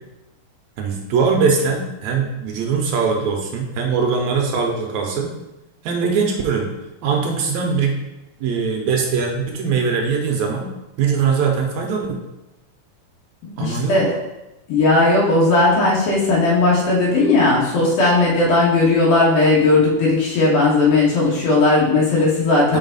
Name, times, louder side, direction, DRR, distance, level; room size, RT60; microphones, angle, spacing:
voice 1, 0.8-5.3 5.8-6.7 7.0-8.0 8.4-10.7 11.0-12.2 13.6-14.0 22.7-22.8, right 5 dB, 75° right, 1 dB, 1.8 m, -21 dB
voice 2, 13.6-14.1 14.7-22.8, left 2 dB, 75° left, -5 dB, 3.0 m, -16 dB
5.6 x 4.8 x 3.9 m, 0.99 s
omnidirectional pair, 3.6 m